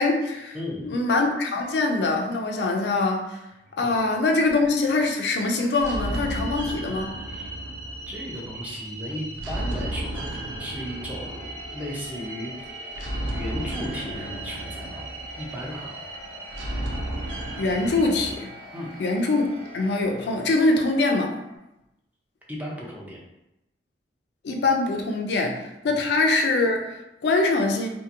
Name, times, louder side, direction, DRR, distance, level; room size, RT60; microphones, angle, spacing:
voice 1, 0.0-0.6 0.8-3.4 3.8-7.2 17.6-18.5 19.0-19.5 19.7-21.4 24.4-27.9, left 3 dB, 65° left, 3 dB, 0.4 m, -23 dB
voice 2, 0.5-1.0 3.8-3.9 7.3-7.5 8.1-13.0 13.3-15.0 15.4-15.9 18.7-18.9 22.5-23.2 25.9-26.0, equal, 10° right, -4 dB, 0.5 m, -35 dB
sound 1, 3.5-21.6, left 1 dB, 30° right, 1.2 m, -46 dB
sound 2, 5.7-18.4, right 1 dB, 80° right, 0.4 m, -34 dB
2.8 x 2.5 x 2.5 m, 0.89 s
head